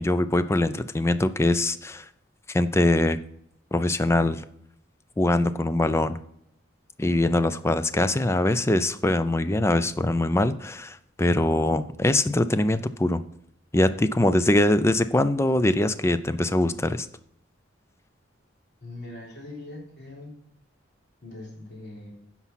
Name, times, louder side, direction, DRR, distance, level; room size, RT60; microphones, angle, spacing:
voice 1, 0.0-2.1 2.5-3.2 3.7-4.4 5.2-6.2 7.0-13.2 13.7-17.1, left 1 dB, 15° left, 13 dB, 0.4 m, -23 dB
voice 2, 18.8-20.3 21.2-22.1, left 2 dB, 55° left, -3 dB, 3.7 m, -41 dB
9.9 x 5.9 x 5.7 m, 0.72 s
head